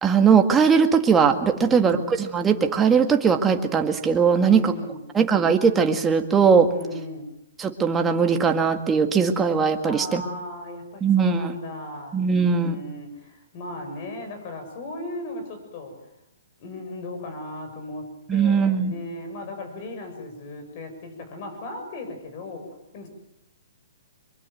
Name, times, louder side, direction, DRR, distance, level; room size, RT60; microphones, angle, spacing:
voice 1, 0.0-4.7 5.1-6.7 7.6-10.2 11.0-11.5 12.1-12.8 18.3-19.0, right 6 dB, 15° right, 5 dB, 1.9 m, -20 dB
voice 2, 1.6-2.0 4.4-5.0 6.7-7.3 9.8-16.1 16.6-23.1, left 1 dB, 40° left, 6 dB, 7.5 m, -37 dB
23.5 x 23.0 x 7.7 m, 0.82 s
hypercardioid pair, 140°, 0 cm